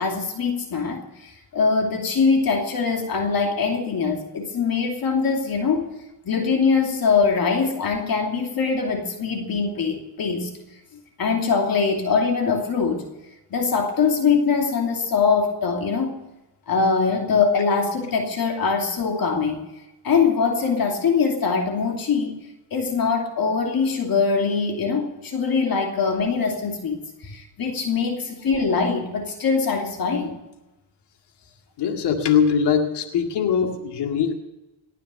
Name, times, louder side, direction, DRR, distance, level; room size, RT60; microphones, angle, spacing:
voice 1, 0.0-5.9 6.2-10.5 11.2-13.0 13.5-16.2 16.7-19.6 20.0-22.3 22.7-27.0 27.2-30.4, left 5 dB, 55° left, 2 dB, 2.8 m, -22 dB
voice 2, 31.8-34.3, left 7 dB, 80° left, 4 dB, 2.1 m, -21 dB
18.5 x 9.8 x 6.9 m, 1.0 s
cardioid pair, 85°, 41 cm